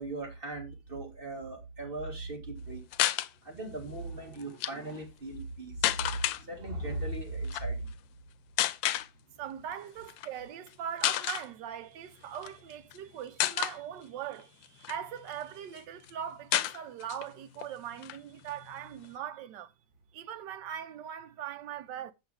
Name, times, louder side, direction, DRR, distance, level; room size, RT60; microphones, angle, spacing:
voice 1, 0.0-2.8 3.4-5.9 6.4-7.9, right 2 dB, 30° right, 2.0 m, -38 dB
sound 1, 2.9-3.3 4.4-4.7 5.8-6.4 7.4-7.6 8.6-9.1 10.1-10.3 10.7-10.8 11.0-11.5 12.3-13.0 13.4-13.8 14.4-15.4 15.8-15.9 16.0-16.1 16.5-17.3 17.6-17.7 18.0-19.1, left 14 dB, 85° left, 1.3 m, -30 dB
voice 2, 9.4-19.7 20.1-22.1, right 10 dB, 75° right, 1.3 m, -40 dB
7.5 x 7.0 x 3.3 m
omnidirectional pair, 2.0 m